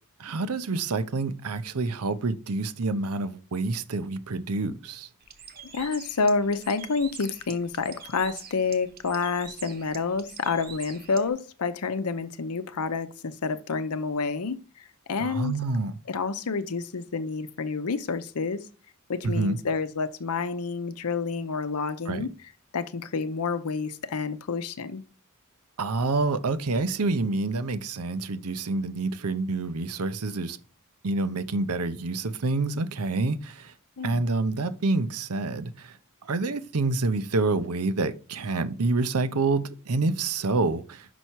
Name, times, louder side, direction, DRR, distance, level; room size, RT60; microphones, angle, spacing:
voice 1, 0.2-5.1 15.2-15.9 19.2-19.6 22.1-22.2 25.8-30.6 31.0-33.7 34.0-35.9 36.3-41.1, right 3 dB, 80° right, 0.7 m, -27 dB
Bird, 5.2-11.3, right 7 dB, 45° right, 0.9 m, -46 dB
voice 2, 5.7-15.6 16.1-18.7 19.1-22.3 22.7-25.0 34.0-34.3, left 4 dB, 85° left, 0.7 m, -29 dB
6.2 x 5.6 x 4.6 m
head